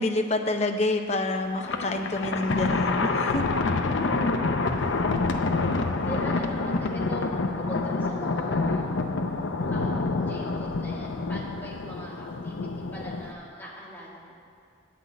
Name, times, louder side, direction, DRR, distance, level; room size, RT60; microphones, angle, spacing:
voice 1, 0.0-3.5, left 2 dB, 35° left, 5 dB, 0.6 m, -27 dB
Thunder, 1.5-13.3, left 3 dB, 90° left, 0.6 m, -27 dB
voice 2, 6.0-8.9 9.7-14.4, equal, 10° left, -7 dB, 2.1 m, -41 dB
9.0 x 6.0 x 8.3 m, 2.3 s
head